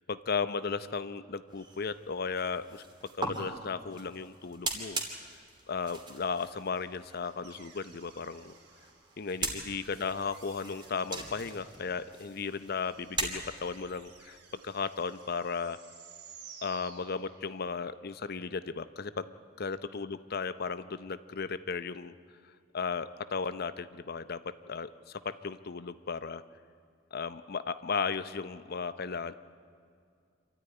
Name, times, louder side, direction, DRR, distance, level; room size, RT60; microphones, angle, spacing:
voice 1, 0.1-2.8 3.1-5.0 5.7-8.5 9.2-15.8 16.6-19.3 19.6-22.2 22.7-26.4 27.1-29.3, left 5 dB, 55° left, 13 dB, 0.7 m, -35 dB
sound 1, 1.5-13.8, right 3 dB, 25° right, 2.9 m, -41 dB
sound 2, 7.4-17.7, right 6 dB, 65° right, 3.6 m, -56 dB
27.0 x 13.0 x 9.8 m, 2.3 s
head